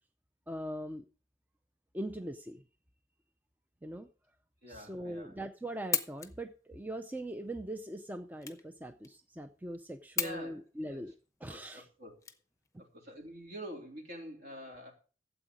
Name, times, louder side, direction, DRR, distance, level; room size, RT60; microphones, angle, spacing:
voice 1, 0.5-1.0 1.9-2.6 3.8-4.1 4.7-11.1 11.4-11.9, right 1 dB, 10° right, 7 dB, 0.5 m, -41 dB
voice 2, 4.6-5.3 10.2-10.6 10.9-11.0 11.5-12.2 12.9-14.9, equal, 55° right, 2 dB, 3.5 m, -46 dB
sound 1, 5.6-13.0, left 7 dB, 15° left, 0.8 m, -40 dB
12.5 x 8.2 x 5.0 m, 0.36 s
head